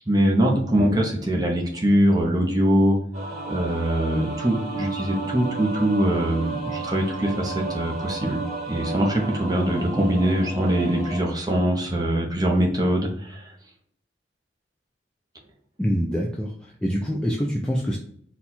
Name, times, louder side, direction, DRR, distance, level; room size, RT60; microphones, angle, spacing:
voice 1, 0.1-3.0 3.5-13.5, right 1 dB, 20° right, -1 dB, 0.8 m, -22 dB
sound 1, 3.1-11.2, right 3 dB, 40° right, 1.7 m, -33 dB
voice 2, 15.8-18.0, equal, 5° left, -3 dB, 0.3 m, -25 dB
4.2 x 2.3 x 4.1 m, 0.63 s
head